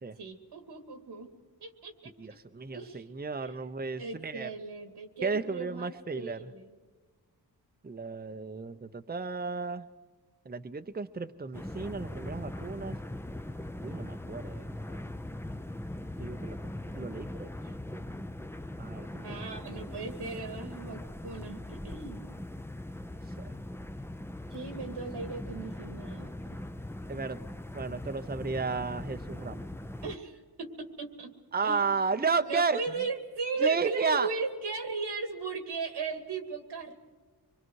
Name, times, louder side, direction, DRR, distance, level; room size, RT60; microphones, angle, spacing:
voice 1, 0.2-1.3 1.6-2.1 2.7-3.1 3.4-3.6 4.0-6.8 19.2-22.2 24.5-26.6 30.0-31.3 31.6-32.2 32.5-36.9, right 4 dB, 85° right, 6 dB, 2.4 m, -37 dB
voice 2, 2.2-4.5 5.2-6.5 7.8-9.9 10.4-13.0 13.8-15.0 16.2-17.5 18.8-19.4 23.4-23.5 27.1-27.4 27.7-29.7 31.5-32.8 33.6-34.3, right 4 dB, 25° right, 8 dB, 0.8 m, -33 dB
sound 1, 11.5-30.2, left 1 dB, 5° left, 0.7 m, -40 dB
25.0 x 22.5 x 4.7 m, 1.4 s
cardioid pair, 60°, 40 cm